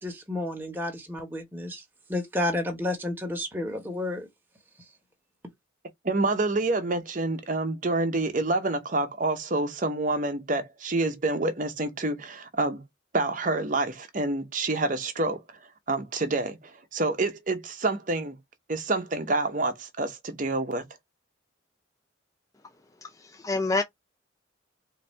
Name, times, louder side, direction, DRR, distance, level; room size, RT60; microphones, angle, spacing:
voice 1, 0.0-1.8 2.1-4.3, left 1 dB, 10° right, 1.2 m, -31 dB
voice 2, 6.0-12.8 13.1-15.4 15.9-18.4 18.7-20.8, right 2 dB, 40° right, 0.8 m, -27 dB
voice 3, 23.0-23.8, left 3 dB, 15° left, 0.4 m, -28 dB
4.0 x 2.7 x 3.2 m
head